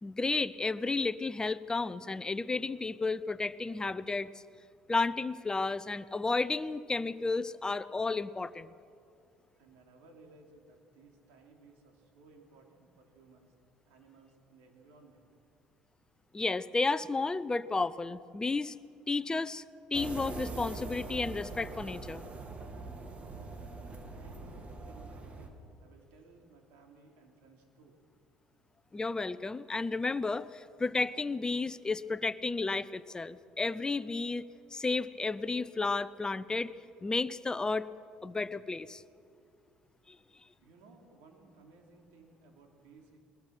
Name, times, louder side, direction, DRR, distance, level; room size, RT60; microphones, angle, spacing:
voice 1, 0.0-4.4 4.9-8.7 16.3-18.8 19.1-19.6 19.9-22.2 28.9-36.7 37.0-37.9 38.2-39.0 40.1-40.2, left 3 dB, 20° left, 16 dB, 0.7 m, -32 dB
voice 2, 9.6-13.5 13.8-15.3 24.2-28.0 40.6-43.2, right 3 dB, 75° right, 2 dB, 3.5 m, -59 dB
sound 1, 19.9-25.5, right 3 dB, 35° right, 2.7 m, -42 dB
21.0 x 20.5 x 6.1 m, 2.4 s
hypercardioid pair, 65°, 4 cm